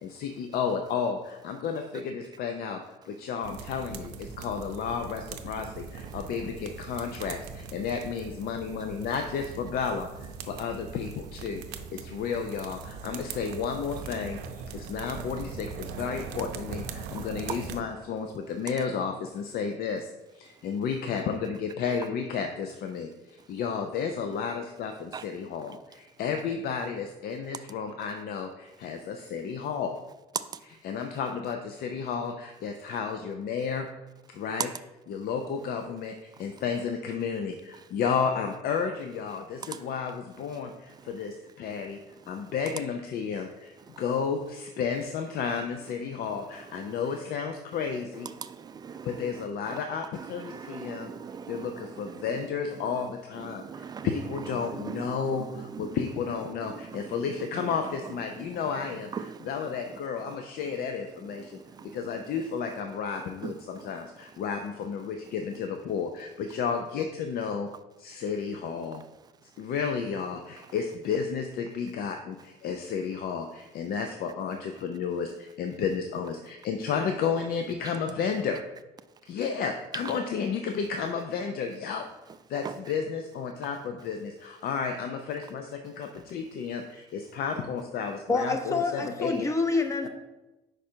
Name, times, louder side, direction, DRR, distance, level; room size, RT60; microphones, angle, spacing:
voice 1, 0.0-2.8 3.0-20.1 20.3-30.0 30.8-33.9 34.3-34.7 35.1-42.0 42.3-48.3 49.0-51.1 51.5-59.1 59.5-67.7 68.0-69.0 69.6-78.6 79.3-82.0 82.5-89.4, left 6 dB, 65° left, 0.5 m, -32 dB
sound 1, 3.4-17.8, right 6 dB, 85° right, 0.5 m, -41 dB
voice 2, 17.1-17.6 23.4-23.5 25.1-25.3 25.7-25.8 36.3-36.6 37.8-37.9 39.6-39.8 40.5-40.6 40.9-41.3 41.7-42.7 43.8-44.0 46.2-47.1 47.8-49.8 50.1-52.5 52.7-53.1 53.3-56.1 56.6-60.4 60.6-60.8 61.2-62.4 63.4-63.9 82.6-82.8, right 6 dB, 25° right, 0.3 m, -42 dB
voice 3, 88.3-90.1, left 3 dB, 15° left, 0.7 m, -27 dB
5.1 x 4.7 x 4.4 m
cardioid pair, 110°, 17 cm